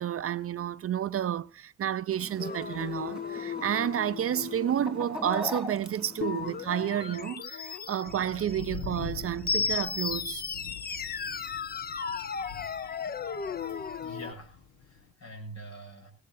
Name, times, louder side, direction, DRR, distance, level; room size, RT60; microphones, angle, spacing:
voice 1, 0.0-10.4, right 10 dB, 50° right, 0.6 m, -30 dB
Chicken rooster, 2.1-7.2, left 1 dB, ahead, 3.1 m, -42 dB
sound 1, 2.4-14.3, left 6 dB, 30° left, 0.7 m, -36 dB
sound 2, 8.0-15.1, left 5 dB, 80° left, 1.8 m, -44 dB
voice 2, 13.7-16.1, right 1 dB, 60° left, 7.6 m, -46 dB
18.5 x 16.5 x 2.7 m
cardioid pair, 90°, 30 cm